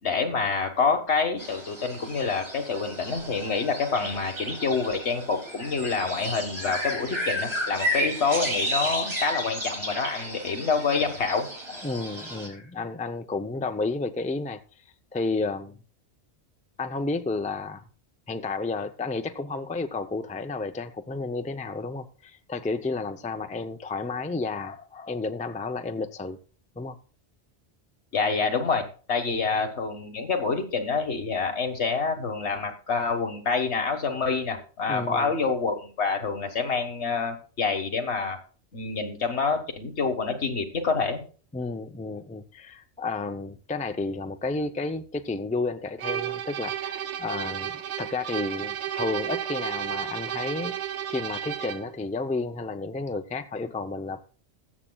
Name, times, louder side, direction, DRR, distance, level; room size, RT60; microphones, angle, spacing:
voice 1, 0.0-11.9 12.5-12.6 28.1-38.4 38.7-41.2, left 4 dB, 80° left, 1.7 m, -27 dB
sound 1, 1.4-12.5, equal, 70° right, 4.9 m, -33 dB
voice 2, 11.8-14.6 15.1-15.8 16.8-17.8 18.3-26.4 26.8-27.0 29.3-29.4 34.9-35.3 41.5-50.8 51.1-54.2, left 3 dB, 10° left, 0.4 m, -31 dB
sound 2, 46.0-51.9, right 10 dB, 90° right, 1.0 m, -32 dB
21.0 x 7.4 x 2.3 m
omnidirectional pair, 1.1 m